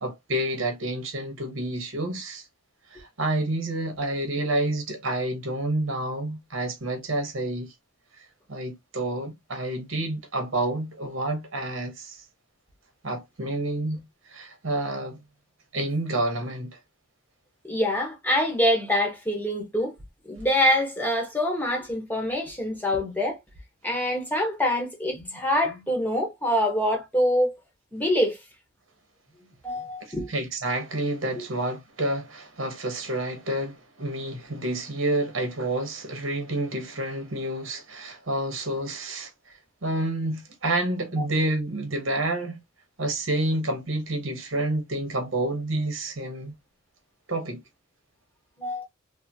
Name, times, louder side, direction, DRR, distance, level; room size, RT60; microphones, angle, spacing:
voice 1, 0.0-2.4 2.9-7.7 8.5-12.2 13.0-14.0 14.3-15.2 15.7-16.8 30.0-39.3 39.8-42.6 43.0-46.5 47.3-47.6, right 1 dB, 70° right, 1.0 m, -29 dB
voice 2, 17.6-19.9 20.3-23.4 23.8-27.6 27.9-28.4 29.6-30.3 48.6-48.8, left 1 dB, 10° left, 0.9 m, -25 dB
3.6 x 2.0 x 2.7 m
head